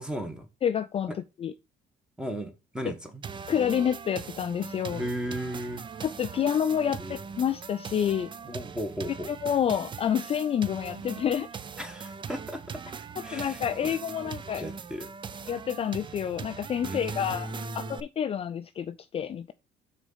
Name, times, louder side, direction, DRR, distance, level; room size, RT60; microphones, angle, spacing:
voice 1, 0.0-0.5 1.1-1.2 2.2-3.2 4.9-5.8 7.0-7.1 8.4-9.3 11.8-12.8 13.2-13.9 14.2-15.1 16.8-17.9, equal, 5° right, 1.5 m, -36 dB
voice 2, 0.6-1.5 3.5-5.0 6.0-8.3 9.3-11.6 13.3-14.6 15.5-19.5, left 9 dB, 35° left, 0.4 m, -28 dB
sound 1, 3.2-18.0, right 6 dB, 30° right, 0.5 m, -41 dB
6.1 x 4.1 x 5.6 m
cardioid pair, 110°, 17 cm